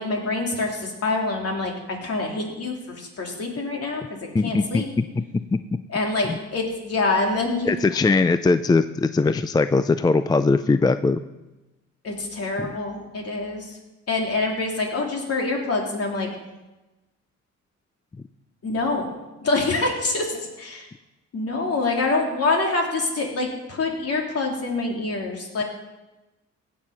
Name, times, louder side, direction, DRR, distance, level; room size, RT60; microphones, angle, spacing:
voice 1, 0.0-4.9 5.9-7.7 12.0-13.8 14.1-16.3 18.6-19.1 19.4-20.9 21.3-25.6, left 3 dB, 50° left, 1 dB, 3.0 m, -26 dB
voice 2, 4.3-5.2 5.5-5.6 7.7-11.2 12.6-12.7, left 3 dB, 15° left, 12 dB, 0.4 m, -20 dB
16.5 x 6.4 x 5.7 m, 1.1 s
cardioid pair, 90°, 30 cm